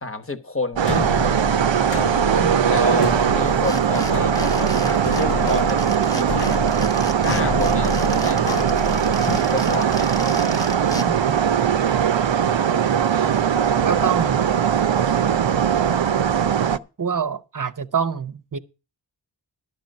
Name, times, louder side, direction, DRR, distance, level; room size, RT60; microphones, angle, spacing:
voice 1, 0.0-1.0 2.7-6.5 7.2-8.5 9.5-10.1, left 2 dB, 30° left, 1.2 m, -29 dB
sound 1, 0.7-10.2, left 7 dB, 60° left, 0.5 m, -30 dB
sound 2, 0.8-16.8, right 8 dB, 70° right, 0.7 m, -20 dB
voice 2, 2.4-2.7 11.1-11.4 13.8-14.6 17.0-18.6, right 6 dB, 45° right, 0.8 m, -26 dB
sound 3, 3.4-11.0, left 1 dB, 10° left, 0.8 m, -34 dB
12.0 x 8.0 x 5.3 m
wide cardioid pair, 50°, 46 cm